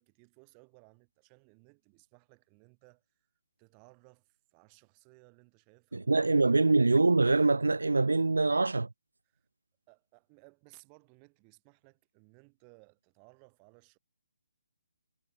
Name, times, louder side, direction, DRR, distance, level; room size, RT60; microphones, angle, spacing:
voice 1, 0.0-3.3 3.6-6.7 9.3-9.5 9.9-14.0, right 40 dB or more, 25° right, 2.6 m, -61 dB
voice 2, 5.9-8.9, right 3 dB, 80° right, 0.3 m, -24 dB
figure-of-eight pair, 145°, 0 cm